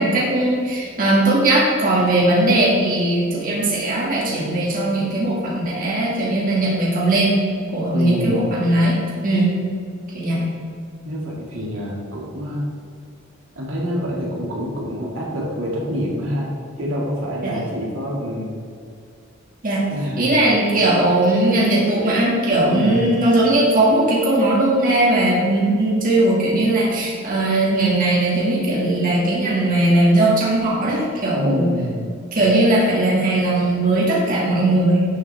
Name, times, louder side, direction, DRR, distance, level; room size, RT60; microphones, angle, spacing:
voice 1, 0.0-7.4 7.7-9.5 10.1-10.5 17.4-17.6 19.6-19.8 20.2-31.7 32.3-35.1, right 1 dB, 45° right, -5 dB, 2.1 m, -18 dB
voice 2, 7.9-8.5 11.0-12.7 13.6-16.5 16.8-18.5 19.9-20.4 22.7-23.1 31.4-32.1, equal, 75° right, -3 dB, 2.2 m, -26 dB
12.5 x 7.1 x 3.5 m, 2.3 s
head